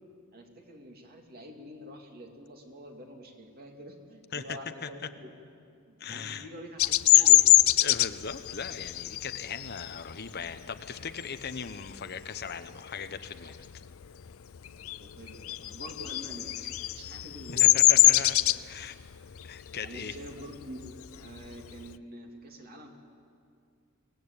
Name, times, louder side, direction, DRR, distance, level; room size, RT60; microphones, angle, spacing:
voice 1, 0.3-5.3 5.9-7.6 15.0-18.2 19.8-22.9, equal, 45° right, 2 dB, 2.6 m, -46 dB
voice 2, 6.0-6.4 7.1-7.2 7.8-13.6 17.6-19.0 19.4-20.2, left 6 dB, 50° left, 10 dB, 0.9 m, -39 dB
Bird vocalization bird call bird song, 6.8-12.0 12.4-12.8 13.1-14.3 14.6-21.9, left 16 dB, 75° left, 0.5 m, -23 dB
24.0 x 18.5 x 8.8 m, 2.3 s
head